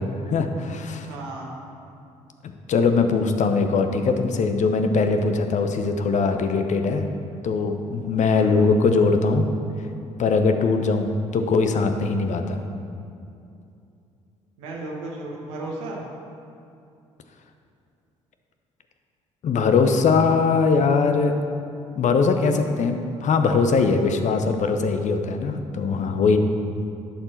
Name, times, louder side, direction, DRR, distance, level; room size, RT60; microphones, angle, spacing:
voice 1, 0.0-1.1 2.7-7.1 7.4-9.5 10.2-12.6 19.4-21.3 22.0-26.4, left 4 dB, 50° left, 7 dB, 0.8 m, -21 dB
voice 2, 1.1-1.5 8.3-8.6 14.6-16.0, right 2 dB, 75° right, -2 dB, 1.3 m, -34 dB
11.5 x 4.5 x 4.5 m, 2.6 s
hypercardioid pair, 50°, 16 cm